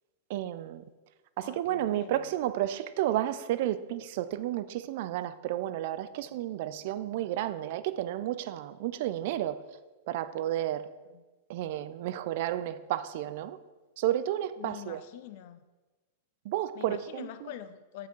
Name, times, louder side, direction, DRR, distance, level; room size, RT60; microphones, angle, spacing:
voice 1, 0.3-0.8 1.4-9.6 10.1-10.9 11.5-13.6 14.0-15.0 16.4-17.5, right 13 dB, 60° right, 14 dB, 0.3 m, -32 dB
voice 2, 1.4-2.4 11.1-11.2 14.6-15.6 16.7-18.1, left 12 dB, 60° left, 12 dB, 0.4 m, -45 dB
5.8 x 3.8 x 4.5 m, 1.2 s
hypercardioid pair, 115°, 0 cm